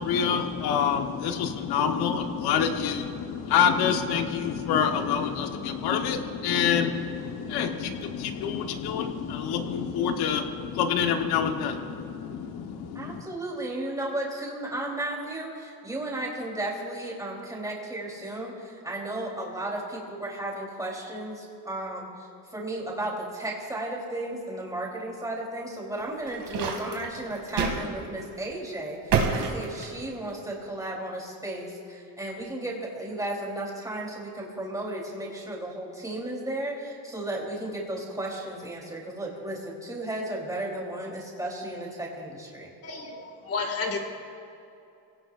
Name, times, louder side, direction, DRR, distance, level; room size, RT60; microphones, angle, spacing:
voice 1, 0.0-13.2, left 7 dB, 85° left, 5 dB, 1.4 m, -27 dB
voice 2, 12.9-42.7, right 1 dB, 10° right, -3 dB, 3.7 m, -34 dB
sound 1, 26.0-27.8 28.2-28.4 29.1-30.3, right 6 dB, 60° right, 2.6 m, -27 dB
voice 3, 42.8-44.0, left 4 dB, 40° left, 3 dB, 2.3 m, -31 dB
26.0 x 17.5 x 2.6 m, 2.7 s
cardioid pair, 140°, 37 cm